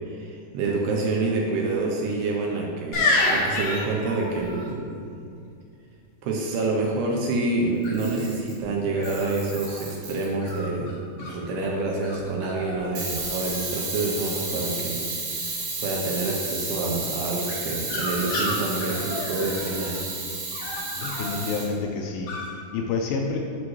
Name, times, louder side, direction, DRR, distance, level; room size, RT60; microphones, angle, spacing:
voice 1, 0.1-5.0 6.2-15.0 15.8-20.0, right 3 dB, 80° right, -1 dB, 2.5 m, -27 dB
sound 1, 2.9-4.7 7.8-8.2 9.0-9.8 10.4-11.3 12.0-12.2 12.4-12.9 13.2-13.8 17.5-20.0 20.5-21.4 22.3-22.5, left 2 dB, 65° left, 1.7 m, -29 dB
Camera, 7.8-8.6 9.0-10.6 13.0-21.7, right 3 dB, 55° right, 3.4 m, -32 dB
voice 2, 21.0-22.3 22.7-23.4, left 4 dB, 80° left, 1 dB, 2.5 m, -28 dB
8.4 x 6.4 x 3.1 m, 2.4 s
omnidirectional pair, 5.3 m